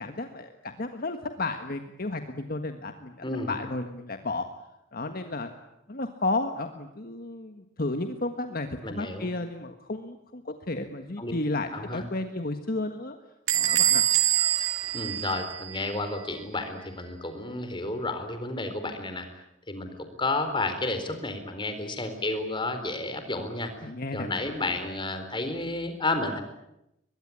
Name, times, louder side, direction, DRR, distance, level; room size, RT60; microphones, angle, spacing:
voice 1, 0.0-3.2 3.5-4.5 4.9-5.5 5.9-13.2 13.5-14.0 23.8-24.3, left 2 dB, 50° left, 7 dB, 1.6 m, -32 dB
voice 2, 3.2-3.6 8.8-9.3 11.2-11.3 11.7-12.0 14.9-19.3 19.7-23.7 24.1-26.4, left 2 dB, 25° left, 8 dB, 4.1 m, -31 dB
Bell / Squeak, 13.5-16.0, right 12 dB, 85° right, 2.4 m, -25 dB
23.5 x 22.0 x 9.9 m, 0.85 s
head